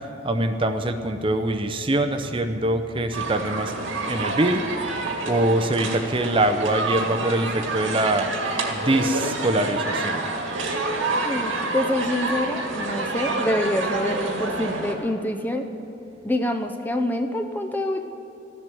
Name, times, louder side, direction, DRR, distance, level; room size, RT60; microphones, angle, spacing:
voice 1, 0.2-3.8 4.1-4.6 5.2-8.3 8.7-10.3, right 1 dB, 25° right, 7 dB, 0.6 m, -23 dB
sound 1, 3.1-14.9, right 3 dB, 85° right, 2.0 m, -28 dB
voice 2, 11.2-15.7 16.2-18.0, left 1 dB, 10° left, 5 dB, 0.6 m, -26 dB
14.5 x 7.6 x 9.9 m, 2.8 s
head